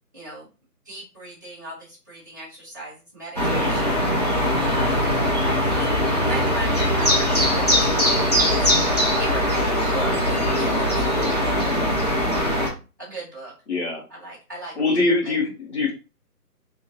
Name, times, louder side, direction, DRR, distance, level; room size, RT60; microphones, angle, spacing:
voice 1, 0.1-0.5 0.8-4.0 4.5-12.7 13.0-13.5 14.1-15.0 15.2-15.3, right 2 dB, 10° right, -9 dB, 0.7 m, -38 dB
sound 1, 3.4-12.7, equal, 25° left, 0.5 m, -21 dB
voice 2, 13.7-14.0 14.8-15.9, left 3 dB, 45° left, -1 dB, 1.3 m, -22 dB
2.7 x 2.6 x 2.8 m, 0.32 s
figure-of-eight pair, 150°, 48 cm